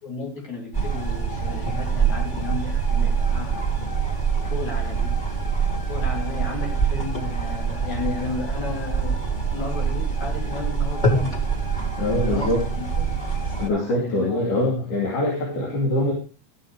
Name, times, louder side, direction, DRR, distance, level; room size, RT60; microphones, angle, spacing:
voice 1, 0.0-3.7 4.4-5.1 5.9-9.2 9.5-11.3 12.2-13.1 13.4-14.6 15.5-15.8, left 3 dB, 70° left, -1 dB, 4.8 m, -34 dB
sound 1, 0.7-13.7, right 5 dB, 20° left, 1.5 m, -25 dB
voice 2, 12.0-12.6 13.6-16.1, left 1 dB, 90° left, -3 dB, 4.1 m, -23 dB
13.5 x 6.9 x 4.7 m, 0.33 s
omnidirectional pair, 3.5 m